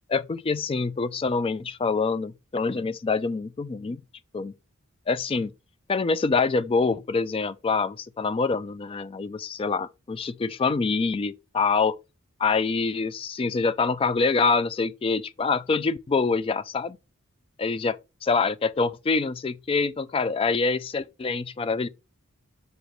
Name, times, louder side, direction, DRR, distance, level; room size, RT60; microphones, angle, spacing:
voice 1, 0.1-4.0 4.3-4.5 5.1-5.5 5.9-12.0 12.4-17.0 17.6-17.9 18.2-21.9, left 4 dB, 25° left, 0.3 m, -25 dB
6.4 x 5.0 x 3.1 m
head